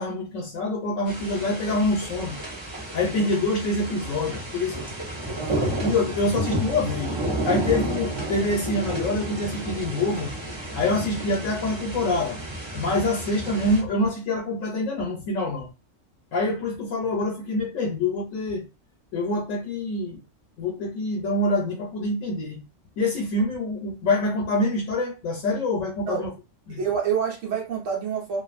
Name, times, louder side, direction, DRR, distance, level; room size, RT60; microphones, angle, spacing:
voice 1, 0.0-2.4 2.9-4.8 5.6-7.2 7.5-10.3 10.7-12.4 12.7-15.7 16.3-18.7 19.1-20.2 20.6-22.6 23.0-26.3 26.7-26.8, left 2 dB, 85° left, 1.0 m, -26 dB
sound 1, 1.1-13.8, right 1 dB, 25° right, 0.7 m, -31 dB
voice 2, 5.3-5.7 12.9-13.1 26.1-26.2 26.7-28.4, right 7 dB, 90° right, 1.2 m, -28 dB
2.4 x 2.4 x 2.4 m
omnidirectional pair, 1.3 m